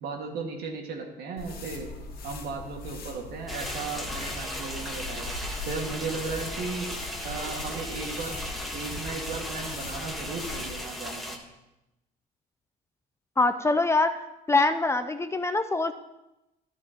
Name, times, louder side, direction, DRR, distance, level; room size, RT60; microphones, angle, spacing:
voice 1, 0.0-1.9 2.2-5.3 5.7-6.9 7.2-8.4 8.7-11.4, right 4 dB, 70° right, 2 dB, 1.9 m, -36 dB
sound 1, 1.4-10.9, left 3 dB, 65° left, 1.8 m, -40 dB
sound 2, 3.5-11.4, equal, ahead, 1.3 m, -37 dB
sound 3, 3.6-6.2 6.5-9.2, right 1 dB, 40° right, 2.3 m, -49 dB
voice 2, 13.4-14.1 14.5-15.9, left 3 dB, 15° left, 9 dB, 0.5 m, -23 dB
12.0 x 10.5 x 2.9 m, 0.94 s
cardioid pair, 110°, 17 cm